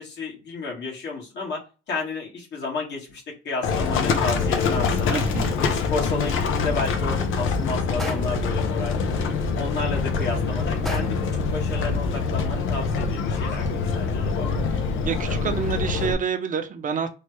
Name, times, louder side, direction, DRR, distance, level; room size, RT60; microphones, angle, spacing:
voice 1, 0.0-5.2 5.5-9.3 9.6-14.5, left 3 dB, 60° left, -2 dB, 1.6 m, -32 dB
Livestock farm animals working animals, 3.6-16.1, left 5 dB, 85° left, 0.6 m, -25 dB
voice 2, 5.1-5.6 15.0-17.1, right 6 dB, 40° right, 7 dB, 0.7 m, -27 dB
sound 1, 8.0-8.6 10.9-11.4, equal, ahead, 0.6 m, -35 dB
3.2 x 2.3 x 3.0 m, 0.33 s
cardioid pair, 90°, 20 cm